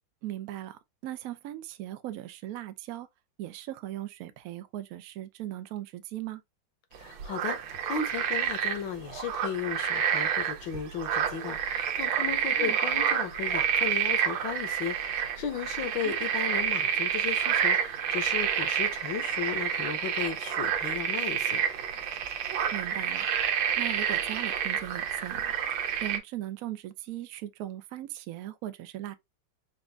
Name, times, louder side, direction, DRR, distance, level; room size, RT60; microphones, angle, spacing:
voice 1, 0.2-3.1 3.4-6.4 12.6-12.8 16.0-16.1 22.7-23.3 23.8-25.5 26.0-29.1, right 13 dB, 75° right, 0.8 m, -38 dB
sound 1, 6.9-26.2, right 8 dB, 90° right, 1.6 m, -29 dB
voice 2, 7.0-21.6, left 7 dB, 75° left, 1.6 m, -35 dB
5.1 x 2.5 x 3.3 m
omnidirectional pair, 2.1 m